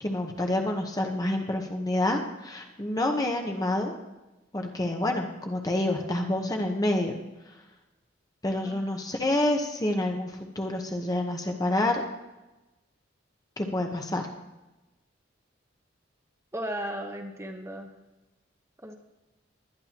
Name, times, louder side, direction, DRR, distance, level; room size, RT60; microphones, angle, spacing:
voice 1, 0.0-3.9 4.5-7.2 8.4-12.0 13.6-14.3, left 1 dB, 20° left, 3 dB, 1.0 m, -28 dB
voice 2, 16.5-17.9 18.8-18.9, right 1 dB, 15° right, 3 dB, 1.0 m, -35 dB
20.5 x 10.5 x 3.0 m, 1.0 s
head